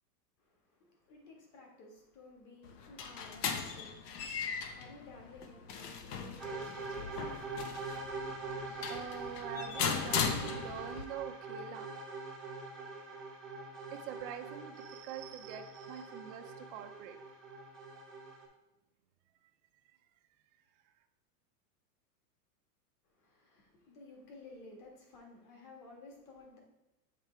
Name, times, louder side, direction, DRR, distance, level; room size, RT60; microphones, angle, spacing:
voice 1, 0.4-8.5 23.0-26.6, left 2 dB, 35° left, 0 dB, 1.7 m, -55 dB
sound 1, 2.6-11.1, left 7 dB, 70° left, 0.9 m, -38 dB
sound 2, 6.4-18.5, right 3 dB, ahead, 0.7 m, -43 dB
voice 2, 8.2-11.9 13.9-17.2, right 9 dB, 35° right, 5 dB, 0.4 m, -45 dB
7.4 x 3.3 x 4.5 m, 0.92 s
supercardioid pair, 150°, 49 cm